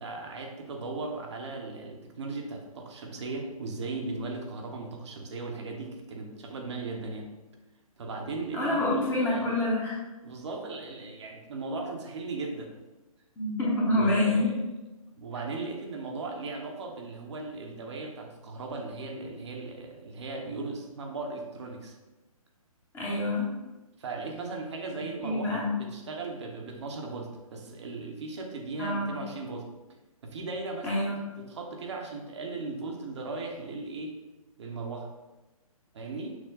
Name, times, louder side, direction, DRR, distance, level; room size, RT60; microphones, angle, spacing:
voice 1, 0.0-7.3 8.0-9.5 10.2-12.7 13.9-14.6 15.1-21.9 24.0-29.7 30.2-34.2 34.6-35.1 35.9-36.4, right 3 dB, 50° right, 2 dB, 0.8 m, -37 dB
voice 2, 8.5-10.0 13.4-14.5 22.9-23.5 25.0-25.7 28.8-29.1 30.8-31.2, left 1 dB, 10° left, -5 dB, 0.8 m, -27 dB
6.1 x 2.1 x 3.9 m, 1.1 s
figure-of-eight pair, 135°, 19 cm